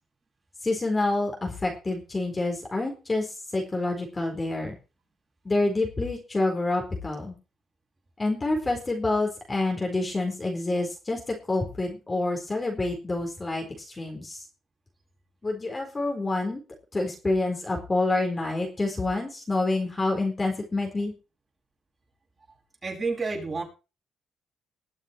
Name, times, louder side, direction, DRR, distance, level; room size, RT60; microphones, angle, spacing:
voice 1, 0.6-3.3 3.5-4.8 5.4-7.3 8.2-14.4 15.4-16.6 16.9-21.1, left 2 dB, 25° left, 1 dB, 4.3 m, -27 dB
voice 2, 22.8-23.6, right 4 dB, 30° right, -1 dB, 7.5 m, -29 dB
21.0 x 7.3 x 4.6 m, 0.33 s
cardioid pair, 90°, 0 cm